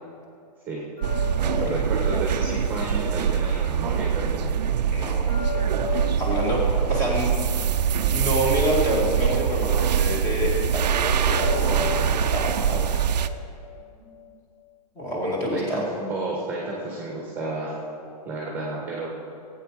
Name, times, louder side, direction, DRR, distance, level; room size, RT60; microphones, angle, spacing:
sound 1, 1.0-4.1 5.3-8.8 11.3-14.3, left 11 dB, 60° left, 2.5 m, -37 dB
sound 2, 1.0-13.3, right 8 dB, 90° right, 0.7 m, -24 dB
voice 1, 1.6-4.6 5.5-5.8 14.0-14.1 15.5-17.8 18.2-19.1, right 2 dB, 10° right, -3 dB, 1.5 m, -32 dB
voice 2, 4.9-5.3 6.1-7.4 8.1-12.8 15.0-15.8, equal, 15° left, -3 dB, 2.1 m, -27 dB
16.0 x 8.9 x 5.0 m, 2.5 s
hypercardioid pair, 170°, 21 cm